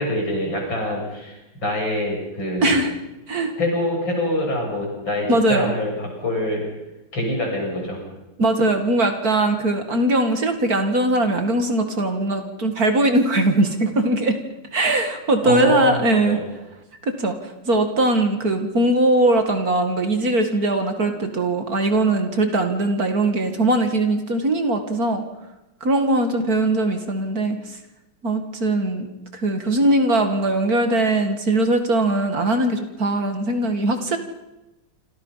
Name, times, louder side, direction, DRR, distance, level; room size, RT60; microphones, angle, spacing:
voice 1, 0.0-2.8 3.6-6.6 7.1-8.0 15.4-16.4, left 1 dB, 75° left, 0 dB, 8.5 m, -25 dB
voice 2, 2.6-2.9 3.3-3.5 5.3-5.7 8.4-14.4 14.7-16.4 17.0-17.4 17.6-25.2 25.8-27.6 28.2-29.1 29.3-34.2, right 2 dB, 50° right, 6 dB, 2.5 m, -20 dB
27.5 x 26.5 x 5.8 m, 0.97 s
omnidirectional pair, 2.1 m